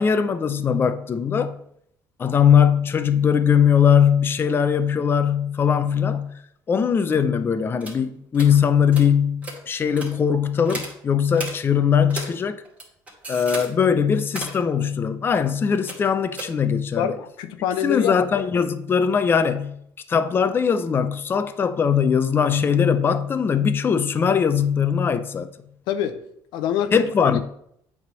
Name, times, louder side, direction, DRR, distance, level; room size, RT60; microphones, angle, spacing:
voice 1, 0.0-1.6 2.2-6.3 6.7-12.6 13.3-17.1 17.8-19.7 20.1-25.5 26.9-27.4, left 7 dB, 30° left, 0.5 m, -20 dB
sound 1, 7.8-8.0 8.3-8.5 8.9-9.1 9.4-9.6 9.9-10.1 10.6-10.9 11.3-11.5 12.1-12.3 12.6-13.7 14.2-14.6 15.9-16.1 16.4-16.5, right 2 dB, 20° right, 2.2 m, -34 dB
voice 2, 17.0-18.2 25.9-26.2 26.5-27.4, left 9 dB, 85° left, 0.7 m, -25 dB
8.0 x 3.5 x 6.2 m
cardioid pair, 120°, 8 cm